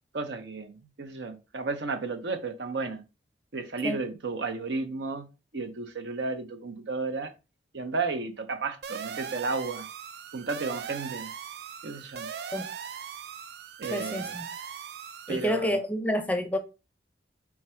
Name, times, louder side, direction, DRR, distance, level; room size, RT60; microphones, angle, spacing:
voice 1, 0.1-3.0 3.5-7.3 7.7-9.9 10.3-11.3 11.8-12.3 13.8-14.3 15.3-15.7, right 3 dB, 80° right, 0.7 m, -33 dB
sound 1, 8.8-15.5, right 7 dB, 60° right, 0.3 m, -39 dB
voice 2, 13.9-14.4 15.3-16.6, equal, 10° left, 0.4 m, -29 dB
4.4 x 2.3 x 4.3 m
head